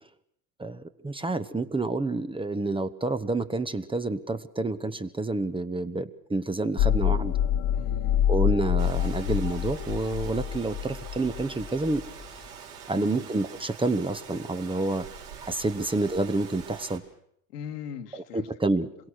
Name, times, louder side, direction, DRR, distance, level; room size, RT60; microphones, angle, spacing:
voice 1, 0.6-7.3 8.3-12.0 12.9-15.0 15.4-17.0 18.3-19.1, right 2 dB, 10° right, 11 dB, 1.1 m, -28 dB
sound 1, 6.8-12.2, left 10 dB, 55° left, 1.2 m, -26 dB
voice 2, 7.7-8.3 12.9-13.3 15.8-15.9 17.5-18.5 18.8-19.1, left 7 dB, 85° left, 4 dB, 2.3 m, -41 dB
Rain, 8.8-17.0, right 7 dB, 80° right, 5.2 m, -45 dB
26.5 x 22.5 x 6.4 m, 0.70 s
hypercardioid pair, 90°, 46 cm